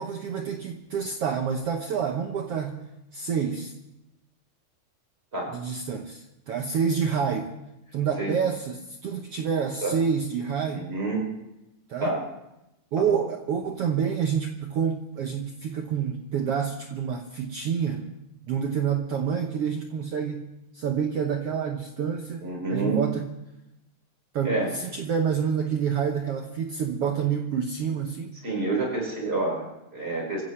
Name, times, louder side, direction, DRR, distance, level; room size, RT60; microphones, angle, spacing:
voice 1, 0.0-2.8 3.1-3.7 5.5-7.6 7.9-10.9 11.9-12.1 12.9-18.1 18.5-20.4 20.7-23.3 24.3-28.3, right 7 dB, 70° right, 4 dB, 1.5 m, -28 dB
voice 2, 10.7-11.3 12.0-12.2 13.0-13.2 22.4-23.0 24.4-24.7 28.4-30.4, right 2 dB, 15° right, -2 dB, 4.9 m, -28 dB
26.5 x 15.5 x 3.2 m, 0.92 s
omnidirectional pair, 3.8 m